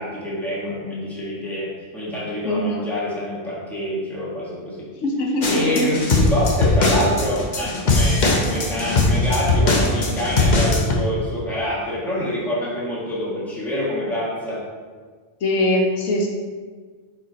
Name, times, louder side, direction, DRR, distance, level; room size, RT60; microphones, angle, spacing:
voice 1, 0.0-4.9 5.5-14.6, equal, ahead, -8 dB, 1.6 m, -26 dB
voice 2, 2.4-2.8 5.0-5.9 15.4-16.3, left 1 dB, 80° left, -1 dB, 1.2 m, -22 dB
sound 1, 5.4-10.9, left 2 dB, 40° left, 0.9 m, -19 dB
4.9 x 4.8 x 4.0 m, 1.5 s
omnidirectional pair, 1.2 m